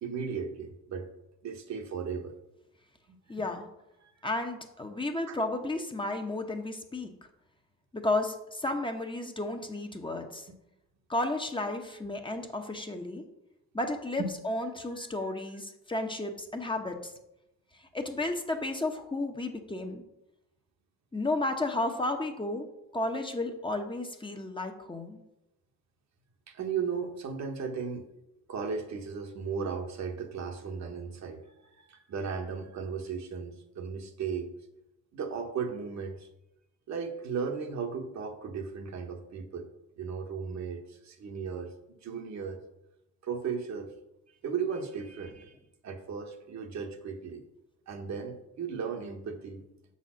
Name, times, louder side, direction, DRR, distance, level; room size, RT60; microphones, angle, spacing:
voice 1, 0.0-1.1 1.4-2.3 3.1-3.2 4.0-4.1 5.3-5.4 10.5-10.6 14.2-14.4 26.5-28.1 28.5-34.5 35.1-36.3 36.9-39.7 40.0-42.6 43.2-43.9 44.4-45.5 45.8-47.4 47.9-49.6, right 6 dB, 65° right, 4 dB, 1.3 m, -36 dB
voice 2, 3.3-3.7 4.2-7.1 7.9-10.5 11.1-13.2 13.7-17.1 17.9-20.0 21.1-22.7 22.9-25.2, left 2 dB, 15° left, 4 dB, 0.9 m, -33 dB
6.8 x 4.3 x 6.2 m, 0.89 s
cardioid pair, 90°, 30 cm